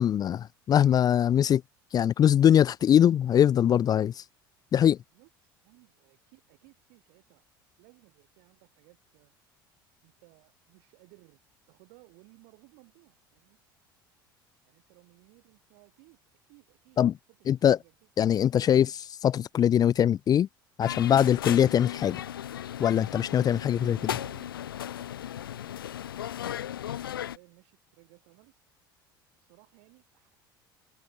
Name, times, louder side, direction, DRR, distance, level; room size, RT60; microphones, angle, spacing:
voice 1, 0.0-1.6 1.9-4.1 4.7-5.0 17.0-17.1 17.5-17.8 18.2-20.5 20.8-22.2 22.8-24.0, left 10 dB, 35° left, 0.5 m, -22 dB
voice 2, 5.1-7.4 7.8-9.4 10.0-11.4 11.7-13.6 14.6-18.1 23.5-28.6 29.3-30.5, right 40 dB or more, 60° right, 5.5 m, -60 dB
sound 1, 20.8-27.4, left 11 dB, 80° left, 0.8 m, -36 dB
figure-of-eight pair, 70°, 12 cm